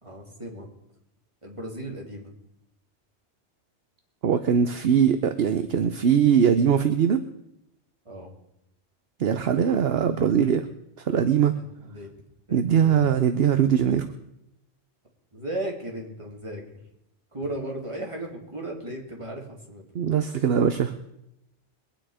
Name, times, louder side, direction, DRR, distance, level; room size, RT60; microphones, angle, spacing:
voice 1, 0.0-0.7 1.4-2.3 8.0-8.3 11.5-12.1 12.5-13.1 15.3-16.6 17.3-19.8, right 1 dB, 25° right, -1 dB, 2.9 m, -36 dB
voice 2, 4.2-7.2 9.2-10.7 11.1-11.5 12.5-14.1 19.9-20.9, right 8 dB, 60° right, 10 dB, 1.0 m, -21 dB
22.5 x 9.2 x 5.0 m, 0.82 s
omnidirectional pair, 1.2 m